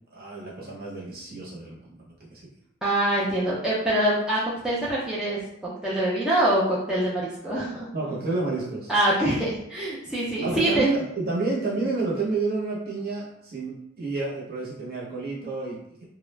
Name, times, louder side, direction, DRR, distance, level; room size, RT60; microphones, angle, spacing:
voice 1, 0.1-2.4 7.9-8.9 10.4-16.1, right 3 dB, 45° right, -4 dB, 0.7 m, -30 dB
voice 2, 2.8-7.9 8.9-10.9, right 1 dB, 5° right, -8 dB, 0.4 m, -24 dB
2.3 x 2.0 x 3.1 m, 0.76 s
head